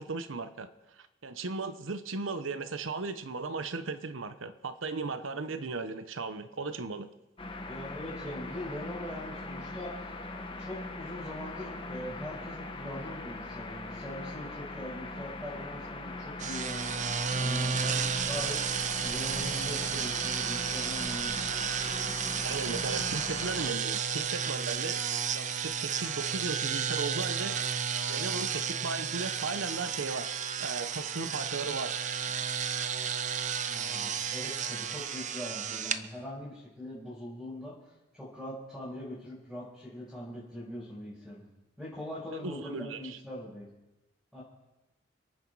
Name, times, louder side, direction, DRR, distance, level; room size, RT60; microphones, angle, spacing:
voice 1, 0.0-7.1 22.4-25.0 25.3-27.6 28.1-32.3 42.3-43.2, right 3 dB, 85° right, 11 dB, 0.9 m, -37 dB
sound 1, 7.4-23.7, left 2 dB, 25° left, 1.2 m, -41 dB
voice 2, 7.7-10.2 10.6-17.0 17.4-21.4 33.7-37.7 38.1-41.5 41.8-43.7 44.3-44.4, left 1 dB, ahead, -10 dB, 5.2 m, -42 dB
sound 2, 16.4-36.0, right 7 dB, 40° right, 0.7 m, -32 dB
28.0 x 9.5 x 4.7 m, 0.99 s
head